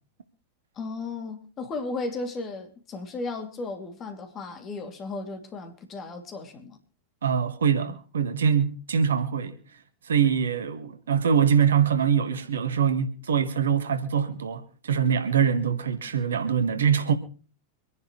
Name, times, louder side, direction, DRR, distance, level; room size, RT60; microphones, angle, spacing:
voice 1, 0.8-6.8, left 3 dB, 30° left, 2.9 m, -35 dB
voice 2, 7.2-9.6 10.1-17.1, right 7 dB, 65° right, 1.7 m, -24 dB
25.5 x 10.5 x 3.3 m
figure-of-eight pair, 90°, 0 cm